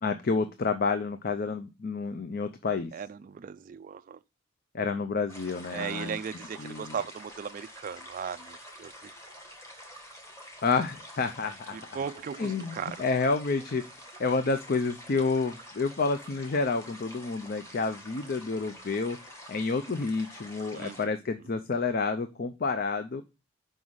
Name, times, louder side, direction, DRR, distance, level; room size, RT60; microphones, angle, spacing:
voice 1, 0.0-2.9 4.7-6.2 6.6-6.9 10.6-11.8 12.4-13.8 14.2-19.2 19.5-23.2, left 4 dB, 45° left, 0.5 m, -29 dB
voice 2, 2.9-4.2 5.7-9.1 11.7-13.0 20.7-21.0, right 7 dB, 40° right, 0.3 m, -37 dB
sound 1, 5.3-21.0, equal, 15° left, 1.4 m, -48 dB
5.5 x 5.2 x 6.2 m
head